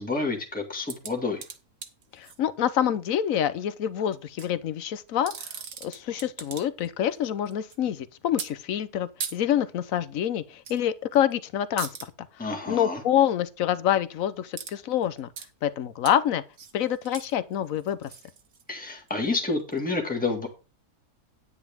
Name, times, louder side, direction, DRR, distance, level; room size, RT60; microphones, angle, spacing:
voice 1, 0.0-1.4 12.4-13.0 18.7-20.5, left 3 dB, 5° left, 1.8 m, -29 dB
sound 1, 0.9-2.4 4.1-4.5 5.1-6.9 7.2-7.8 8.4-8.5 9.2-9.4 10.6-10.8 11.1-11.3 11.8-12.1 14.5-14.8 15.0-15.5 16.1-16.2 16.5-19.1 19.7-19.8, right 6 dB, 55° right, 1.4 m, -39 dB
voice 2, 2.1-5.5 5.8-12.1 12.4-15.3 15.6-16.4 16.7-18.1, left 10 dB, 65° left, 1.2 m, -27 dB
9.8 x 9.7 x 3.6 m
omnidirectional pair, 1.7 m